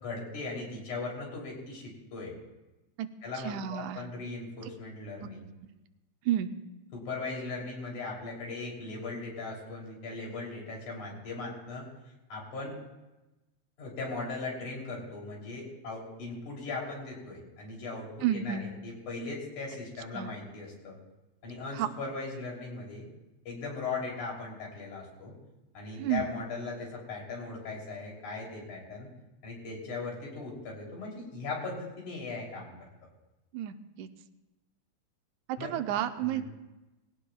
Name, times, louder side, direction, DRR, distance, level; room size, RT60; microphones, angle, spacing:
voice 1, 0.0-2.3 3.2-5.5 6.9-11.9 12.3-12.8 13.8-21.0 21.4-23.1 23.5-25.3 25.7-29.1 29.4-32.7 35.6-35.7 36.2-36.4, left 3 dB, 80° left, -2 dB, 4.6 m, -38 dB
voice 2, 3.4-4.0 5.2-5.3 6.3-6.5 18.2-18.7 20.1-20.3 21.7-21.9 26.0-26.3 33.5-34.1 35.5-36.4, right 11 dB, 85° right, 9 dB, 2.0 m, -31 dB
20.5 x 16.5 x 2.3 m, 1.0 s
omnidirectional pair, 3.4 m